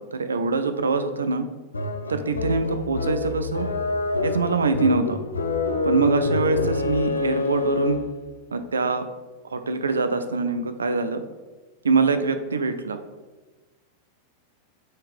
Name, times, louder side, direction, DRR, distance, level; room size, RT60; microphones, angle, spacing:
voice 1, 0.0-1.4 2.1-3.7 4.2-5.2 5.8-8.0 8.5-9.0 9.5-11.2 11.8-13.0, right 4 dB, 70° right, 9 dB, 0.3 m, -24 dB
sound 1, 1.7-8.2, left 3 dB, 75° left, 0.4 m, -27 dB
4.3 x 3.6 x 3.2 m, 1.2 s
figure-of-eight pair, 90°, 0 cm